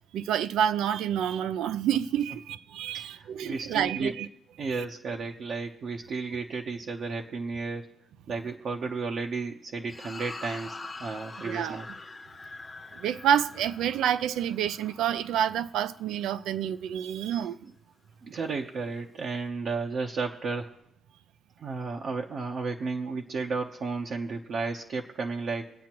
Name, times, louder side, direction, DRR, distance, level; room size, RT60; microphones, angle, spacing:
voice 1, 0.1-4.3 4.7-4.8 11.4-11.8 12.9-17.6, right 9 dB, 85° right, 0.5 m, -28 dB
voice 2, 2.9-4.2 4.6-7.9 8.3-11.9 17.6-17.7 18.2-20.7 21.6-25.7, right 4 dB, 60° right, 0.9 m, -33 dB
sound 1, 9.9-16.4, left 3 dB, 25° left, 0.9 m, -44 dB
24.0 x 8.4 x 3.0 m
cardioid pair, 90°, 0 cm